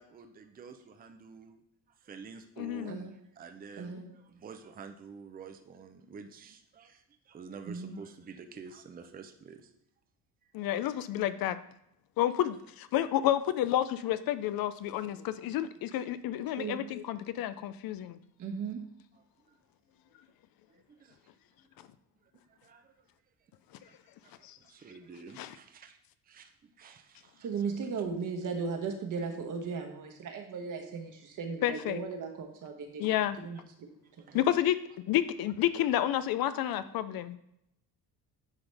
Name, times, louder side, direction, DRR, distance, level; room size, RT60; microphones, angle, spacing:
voice 1, 0.0-1.6 2.0-9.7 10.6-10.7 19.5-19.6 20.7-21.2 22.5-22.9 23.8-24.0 24.6-26.0 26.3-27.5 34.2-34.4, right 5 dB, 25° right, 7 dB, 0.6 m, -49 dB
voice 2, 2.6-3.0 10.5-11.6 12.2-18.2 24.4-24.6 25.4-25.5 31.6-32.0 33.0-33.4 34.3-34.8 35.1-37.4, left 12 dB, 65° left, 13 dB, 0.5 m, -30 dB
voice 3, 3.8-4.1 7.7-8.0 16.6-16.8 18.4-18.8 27.4-33.1 33.4-33.6 34.3-34.4, right 5 dB, 50° right, 4 dB, 1.2 m, -36 dB
9.8 x 4.0 x 3.4 m, 0.77 s
cardioid pair, 120°, 39 cm